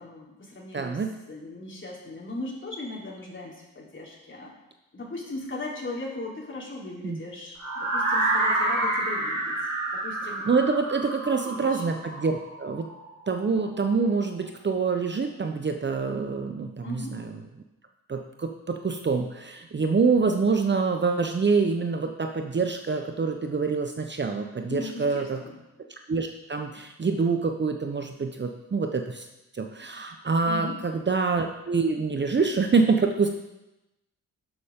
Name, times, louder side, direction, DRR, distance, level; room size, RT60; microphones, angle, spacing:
voice 1, 0.0-1.0 1.3-4.5 4.9-10.5 11.4-11.9 16.8-17.2 24.7-25.6 30.4-30.8, left 2 dB, 35° left, -3 dB, 3.7 m, -38 dB
voice 2, 0.7-1.1 7.0-7.2 10.4-12.8 13.3-17.3 18.1-25.4 26.1-29.3 29.6-30.7 31.1-33.3, right 4 dB, 30° right, 4 dB, 1.0 m, -26 dB
sound 1, 7.6-13.5, right 2 dB, 50° right, 3.1 m, -28 dB
11.5 x 7.2 x 3.8 m, 0.94 s
supercardioid pair, 50°, 34 cm